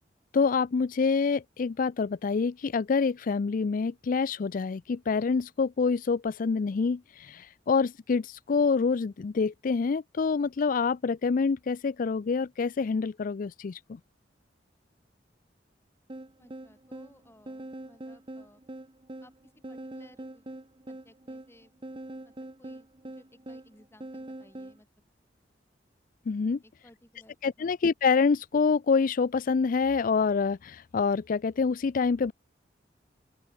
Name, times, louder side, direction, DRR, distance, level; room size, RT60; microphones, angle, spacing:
voice 1, 0.3-14.0 26.3-26.6 27.4-32.3, left 5 dB, 50° left, 0.4 m, -26 dB
sound 1, 16.1-24.8, right 1 dB, 30° right, 1.0 m, -43 dB
voice 2, 16.4-18.6 19.2-20.5 20.9-21.7 22.2-24.9 26.6-27.7, left 1 dB, 15° left, 7.4 m, -59 dB
open air
head